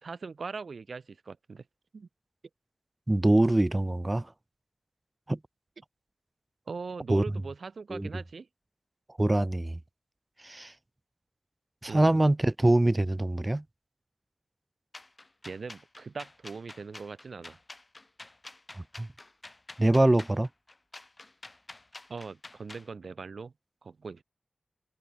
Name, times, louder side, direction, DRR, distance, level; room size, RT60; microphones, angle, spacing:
voice 1, 0.0-1.6 1.9-2.1 6.7-8.5 11.9-12.2 15.4-17.6 22.1-23.5 23.8-24.2, right 4 dB, 70° right, 2.5 m, -40 dB
voice 2, 3.1-4.3 5.3-5.4 7.1-7.2 7.9-8.1 9.2-9.8 10.4-10.7 11.8-13.6 18.8-19.1 19.8-20.5, right 1 dB, 20° right, 0.5 m, -24 dB
sound 1, 14.9-22.9, left 2 dB, 30° left, 7.6 m, -48 dB
wide cardioid pair, 90°, 0 cm